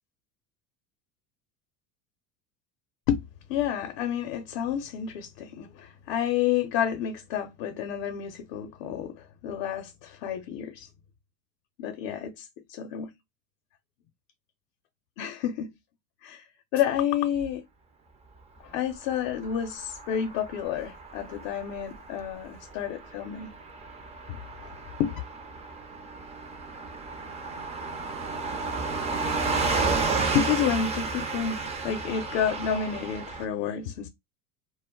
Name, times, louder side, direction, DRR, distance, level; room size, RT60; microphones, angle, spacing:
voice 1, 3.5-9.2 9.4-10.9 11.8-13.1 15.2-15.7 16.2-16.4 16.7-17.6 18.6-23.5 24.3-24.7 25.0-25.1 30.3-34.1, left 9 dB, 65° left, 0.6 m, -30 dB
Car passing by / Truck, 19.1-33.5, right 4 dB, 15° right, 0.4 m, -32 dB
2.1 x 2.1 x 3.6 m
hypercardioid pair, 85°, 48 cm